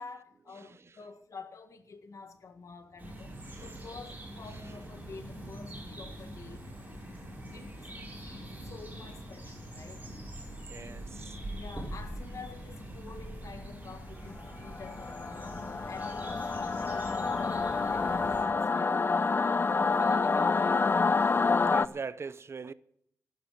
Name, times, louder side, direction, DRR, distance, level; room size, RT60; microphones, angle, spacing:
voice 1, 0.0-6.7 7.5-7.9 8.2-10.0 10.8-11.1 11.5-20.9, left 4 dB, 65° left, 1.8 m, -48 dB
sound 1, 1.8-13.0, left 2 dB, 85° left, 3.1 m, -54 dB
sound 2, 3.0-18.4, right 1 dB, 25° right, 7.0 m, -44 dB
voice 2, 3.5-3.8 10.7-11.4 21.7-22.7, right 5 dB, 50° right, 0.7 m, -41 dB
Singing / Musical instrument, 14.7-21.9, left 4 dB, 40° left, 0.5 m, -28 dB
14.5 x 12.5 x 5.9 m
wide cardioid pair, 105°, 6 cm